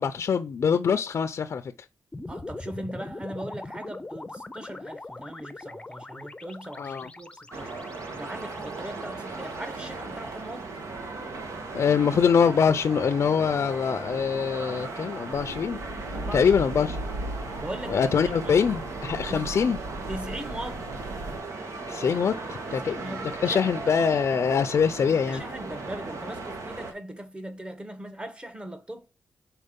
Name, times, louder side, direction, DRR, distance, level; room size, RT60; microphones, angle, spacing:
voice 1, 0.0-1.7 6.8-7.1 11.7-15.8 16.3-17.0 17.9-19.8 21.9-25.4, left 6 dB, 60° left, 0.5 m, -24 dB
sound 1, 2.1-10.4, left 2 dB, 20° left, 0.7 m, -42 dB
voice 2, 2.3-7.7 8.2-10.7 16.1-16.8 17.6-18.1 18.4-18.6 19.3-19.5 20.1-20.9 22.7-23.6 25.3-29.1, right 1 dB, 20° right, 1.2 m, -39 dB
sound 2, 7.5-26.9, right 3 dB, 75° right, 1.5 m, -37 dB
sound 3, 15.3-21.4, right 1 dB, 90° right, 1.2 m, -37 dB
5.4 x 4.3 x 5.2 m
cardioid pair, 85°, 5 cm